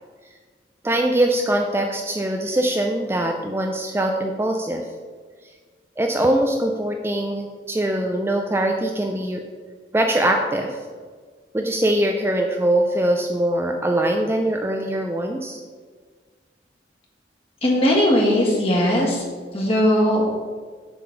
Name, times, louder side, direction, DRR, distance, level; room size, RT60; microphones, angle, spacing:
voice 1, 0.8-4.8 6.0-9.4 9.9-10.8 11.5-15.6, right 1 dB, 15° right, 3 dB, 0.4 m, -22 dB
voice 2, 17.6-19.2 19.5-20.4, equal, 35° left, -3 dB, 1.7 m, -19 dB
7.4 x 4.0 x 5.8 m, 1.6 s
head